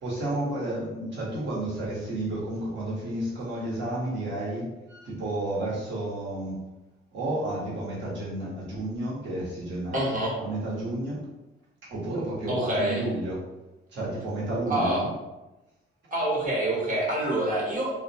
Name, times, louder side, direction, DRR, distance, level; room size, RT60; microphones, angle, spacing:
voice 1, 0.0-6.6 7.1-10.0 10.4-11.2 11.9-13.4 13.9-15.1, right 1 dB, 65° right, -6 dB, 1.1 m, -31 dB
voice 2, 9.9-10.3 12.5-13.0 14.7-15.0 16.1-18.0, right 1 dB, 40° right, -5 dB, 1.1 m, -26 dB
2.4 x 2.1 x 2.7 m, 1.0 s
cardioid pair, 90°, 20 cm